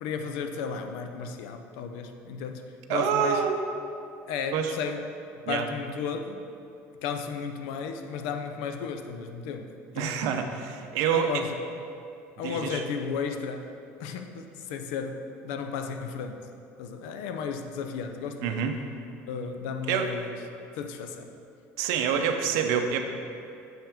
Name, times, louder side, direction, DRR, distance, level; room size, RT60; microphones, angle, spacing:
voice 1, 0.0-2.6 2.9-3.4 4.3-5.0 5.5-6.4 7.0-10.3 11.1-11.6 12.4-13.7 14.0-16.4 16.8-18.6 19.3-20.4 20.8-21.3, left 6 dB, 80° left, 6 dB, 0.5 m, -34 dB
voice 2, 2.9-3.6 4.5-4.7 5.4-5.7 9.9-11.4 12.4-12.8 18.4-18.8 19.9-20.1 21.8-23.0, right 7 dB, 65° right, 5 dB, 0.6 m, -27 dB
7.1 x 5.7 x 3.5 m, 2.5 s
cardioid pair, 170°, 6 cm